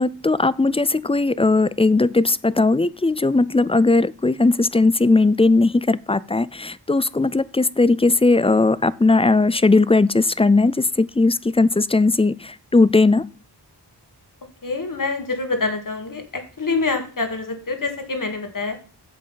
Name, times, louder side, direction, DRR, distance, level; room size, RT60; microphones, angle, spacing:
voice 1, 0.0-13.3, left 3 dB, 15° left, 0.4 m, -18 dB
voice 2, 14.6-18.8, left 3 dB, 50° left, 2.0 m, -26 dB
8.4 x 7.6 x 5.7 m
wide cardioid pair, 75°, 43 cm